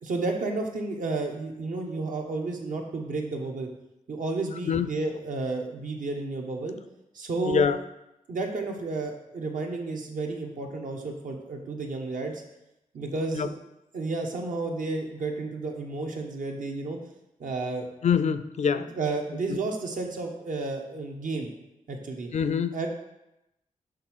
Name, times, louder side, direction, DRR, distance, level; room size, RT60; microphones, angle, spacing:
voice 1, 0.0-3.7 4.1-6.7 7.1-7.7 8.3-12.4 12.9-13.5 13.9-17.0 17.4-17.9 18.8-21.5 21.9-22.3 22.7-22.9, right 3 dB, 70° right, 2 dB, 1.1 m, -31 dB
voice 2, 7.4-7.8 13.4-13.5 18.0-18.9 22.3-22.8, left 7 dB, 55° left, 12 dB, 0.4 m, -24 dB
6.5 x 3.6 x 6.2 m, 0.90 s
wide cardioid pair, 125°, 14 cm